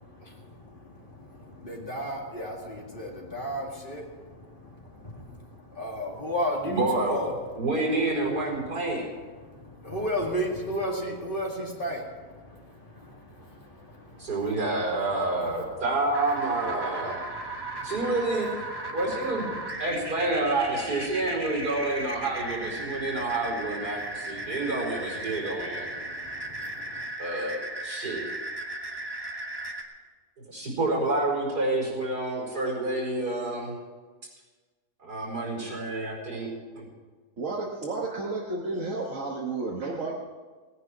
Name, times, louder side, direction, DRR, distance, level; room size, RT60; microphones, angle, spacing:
voice 1, 0.2-0.9 1.2-4.6 4.9-5.3 5.7-7.3 9.4-12.0 12.5-14.3 17.5-17.9 22.9-23.0 24.4-24.5 25.8-27.0, equal, 35° left, -1 dB, 2.2 m, -34 dB
voice 2, 6.6-7.2 7.6-9.1 14.2-17.2 17.8-18.5 18.9-19.5 19.8-25.9 27.2-28.2 30.5-33.7 35.0-36.5 36.7-36.8, right 2 dB, 85° right, -2 dB, 5.3 m, -28 dB
sound 1, 16.1-29.8, right 2 dB, 15° right, 1.2 m, -36 dB
voice 3, 37.4-40.1, right 3 dB, 55° right, -2 dB, 1.6 m, -32 dB
18.0 x 9.9 x 6.1 m, 1.4 s
omnidirectional pair, 1.7 m